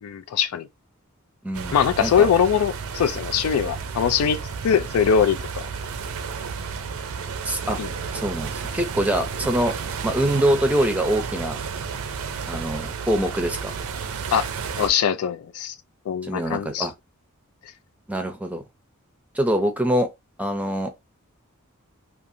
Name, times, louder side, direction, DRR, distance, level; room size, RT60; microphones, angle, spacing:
voice 1, 0.0-0.7 1.7-5.6 7.8-7.9 14.3-14.5 14.8-15.7 16.1-16.9, left 8 dB, 80° left, 0.3 m, -22 dB
voice 2, 1.4-2.3 7.5-7.8 8.1-9.7 10.0-11.6 12.5-13.7 16.2-16.9 18.1-18.6 19.3-20.1 20.4-20.9, right 1 dB, 5° right, 0.6 m, -24 dB
sound 1, 1.5-14.9, right 5 dB, 70° right, 0.5 m, -32 dB
2.7 x 2.4 x 2.6 m
head